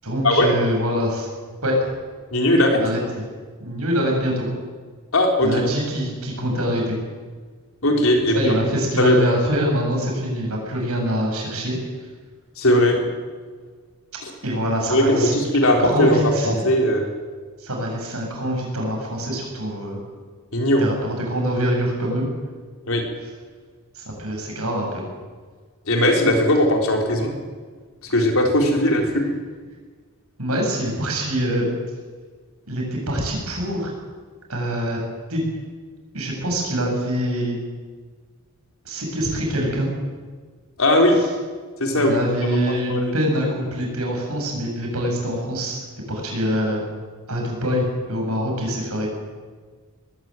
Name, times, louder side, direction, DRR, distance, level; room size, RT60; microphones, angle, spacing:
voice 1, 0.0-1.3 1.6-1.9 2.7-3.2 3.6-4.5 5.4-7.0 8.3-11.8 14.4-16.6 17.6-20.0 20.8-22.3 23.9-25.0 28.7-28.9 30.4-31.7 32.7-33.9 34.5-35.0 35.3-35.4 36.1-37.6 38.8-39.9 41.1-41.3 42.0-46.8 47.3-49.1, equal, 80° right, 0 dB, 7.8 m, -24 dB
voice 2, 2.3-2.8 5.1-5.5 7.8-8.5 9.0-9.3 12.6-13.0 14.2-14.3 14.9-17.1 20.5-20.8 22.9-23.0 25.9-27.3 28.1-29.3 40.8-41.2 41.8-42.2 42.9-43.1, left 1 dB, 65° left, 2 dB, 4.1 m, -18 dB
20.5 x 14.5 x 9.3 m, 1.5 s
head